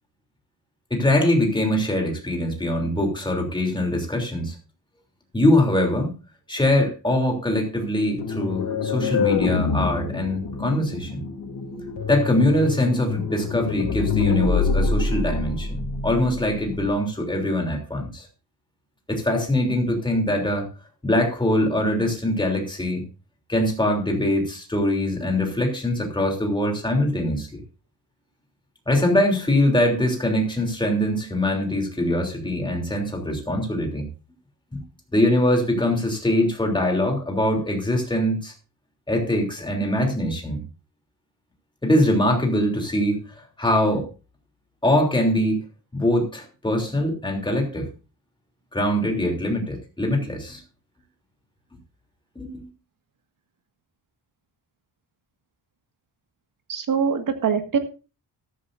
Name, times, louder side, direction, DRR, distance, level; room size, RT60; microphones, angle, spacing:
voice 1, 0.9-4.6 5.3-6.1 6.5-11.2 12.1-18.3 19.1-20.7 21.0-23.0 23.5-27.6 28.9-34.1 34.7-34.8 35.1-38.5 39.1-40.6 41.8-44.1 44.8-45.6 45.9-47.9 48.7-50.6 52.3-52.7, left 1 dB, 10° left, 2 dB, 3.2 m, -23 dB
sound 1, 8.2-16.9, left 4 dB, 80° left, 2.8 m, -26 dB
voice 2, 56.7-57.8, right 6 dB, 50° right, 7 dB, 1.8 m, -23 dB
14.0 x 13.0 x 2.6 m, 0.32 s
wide cardioid pair, 160°, 41 cm